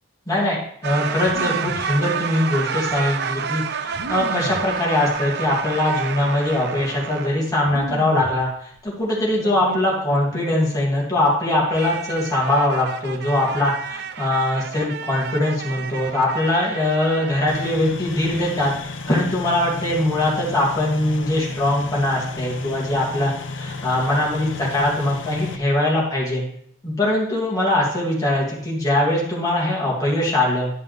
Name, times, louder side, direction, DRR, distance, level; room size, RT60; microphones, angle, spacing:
voice 1, 0.3-18.7 19.1-26.4 26.8-30.7, left 1 dB, 20° left, -6 dB, 2.5 m, -22 dB
sound 1, 0.8-7.5 9.4-10.6 11.7-17.8, right 6 dB, 55° right, 0.5 m, -30 dB
sound 2, 1.3-1.9 2.8-2.9 3.9-4.7 5.5-5.6 6.0-6.5 7.6-8.4 8.7-9.3, right 1 dB, 75° right, 1.0 m, -34 dB
sound 3, 17.5-25.6, left 3 dB, 70° left, 0.8 m, -33 dB
11.0 x 5.5 x 3.4 m, 0.68 s
head